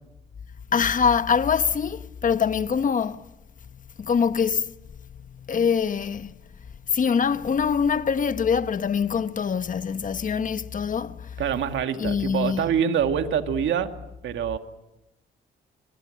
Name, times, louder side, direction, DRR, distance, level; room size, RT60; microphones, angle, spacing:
voice 1, 0.7-3.2 3.7-4.7 5.1-6.4 6.9-11.4 12.0-12.6, left 6 dB, 40° left, 1.2 m, -24 dB
voice 2, 11.4-13.9 14.2-14.6, right 8 dB, 70° right, 2.2 m, -25 dB
28.5 x 23.0 x 7.8 m
cardioid pair, 90°, 20 cm